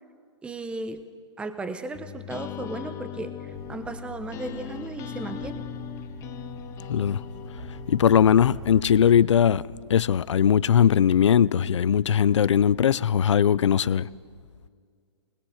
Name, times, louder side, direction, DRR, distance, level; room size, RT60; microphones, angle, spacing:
voice 1, 0.4-1.0 1.4-5.7, right 3 dB, 5° right, 0.9 m, -35 dB
sound 1, 1.9-8.7, left 11 dB, 20° left, 0.6 m, -39 dB
sound 2, 3.5-9.2, equal, 65° right, 3.3 m, -41 dB
voice 2, 6.9-7.2 7.9-9.6 9.9-14.1, left 8 dB, 80° left, 0.5 m, -20 dB
21.0 x 20.5 x 6.5 m
hypercardioid pair, 135°, 15 cm